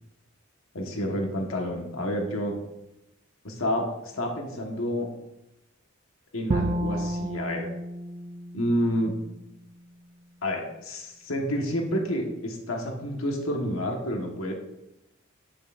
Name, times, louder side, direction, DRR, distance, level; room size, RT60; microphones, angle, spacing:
voice 1, 0.7-2.5 3.4-3.9 4.1-5.1 6.3-7.7 8.5-9.1 10.4-14.5, equal, 80° left, 1 dB, 1.5 m, -29 dB
Bowed string instrument, 6.5-9.6, right 1 dB, 25° right, 0.4 m, -31 dB
10.5 x 8.2 x 2.6 m, 0.88 s
head